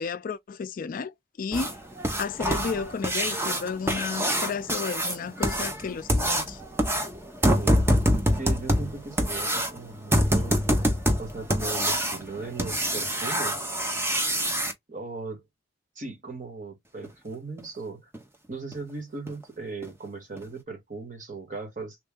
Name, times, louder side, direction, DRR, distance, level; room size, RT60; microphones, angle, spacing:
voice 1, 0.0-1.7 2.2-6.6, left 5 dB, 45° left, 0.4 m, -32 dB
sound 1, 1.5-14.7 17.0-17.1 17.6-17.7 18.1-18.2 18.7-18.8 19.3-19.4 19.8-19.9 20.4-20.5, equal, 15° right, 0.7 m, -26 dB
voice 2, 7.6-7.9 8.4-10.6 11.2-13.7 14.9-15.4 15.9-18.1 18.5-22.0, right 3 dB, 45° right, 1.5 m, -38 dB
3.1 x 2.5 x 3.6 m
head